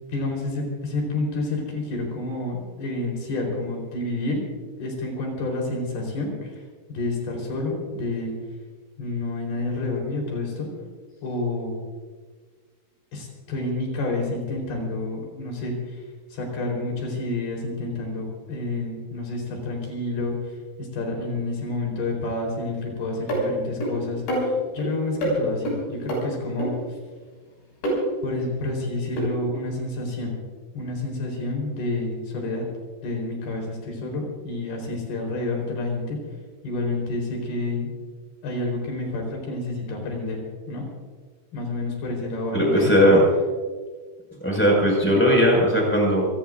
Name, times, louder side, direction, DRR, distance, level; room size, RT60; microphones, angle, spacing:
voice 1, 0.1-4.4 4.8-6.6 6.9-8.3 9.0-10.7 11.2-11.8 13.1-16.0 16.3-20.3 20.8-26.7 28.2-30.4 30.7-32.7 33.0-36.2 36.6-37.9 38.4-40.8 41.5-42.9, left 2 dB, 65° left, 0 dB, 5.9 m, -29 dB
sound 1, 23.3-23.4 23.8-23.9 24.3-24.9 25.2-25.3 25.7-25.8 26.1-26.2 26.6-26.7 27.8-28.0 29.2-29.3, right 1 dB, 85° left, 8.4 m, -24 dB
voice 2, 42.5-43.2 44.4-46.3, equal, 5° left, -2 dB, 5.1 m, -18 dB
27.5 x 18.5 x 2.6 m, 1.5 s
omnidirectional pair, 4.9 m